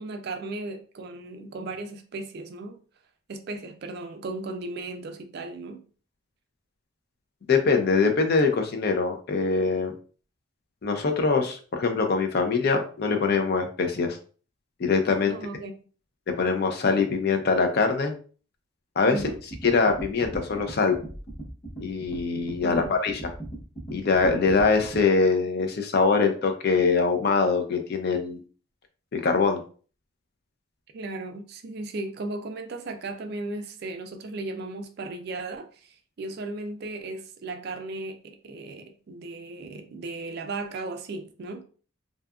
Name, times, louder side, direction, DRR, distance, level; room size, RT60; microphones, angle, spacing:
voice 1, 0.0-2.8 3.3-5.8 15.3-15.7 19.1-19.4 22.6-23.0 30.9-41.6, right 2 dB, 45° right, 0.3 m, -36 dB
voice 2, 7.5-9.9 10.8-14.2 14.8-15.4 16.3-18.1 19.0-19.2 19.6-21.0 21.8-23.3 23.9-28.4 29.1-29.6, left 4 dB, 45° left, 0.4 m, -23 dB
sound 1, 19.1-25.0, right 2 dB, 15° left, 0.8 m, -39 dB
2.6 x 2.3 x 2.3 m
head